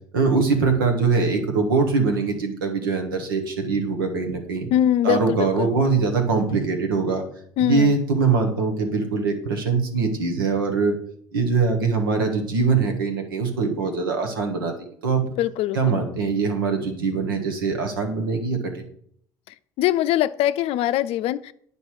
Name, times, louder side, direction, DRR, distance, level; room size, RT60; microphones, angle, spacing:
voice 1, 0.1-4.7 5.0-7.2 7.6-11.0 11.3-14.7 15.0-15.4 15.7-18.8, right 4 dB, 90° right, 1.5 m, -22 dB
voice 2, 4.7-5.7 7.6-7.9 15.4-16.0 19.8-21.5, left 12 dB, 60° left, 0.5 m, -22 dB
9.7 x 5.3 x 4.7 m
hypercardioid pair, 70°, 11 cm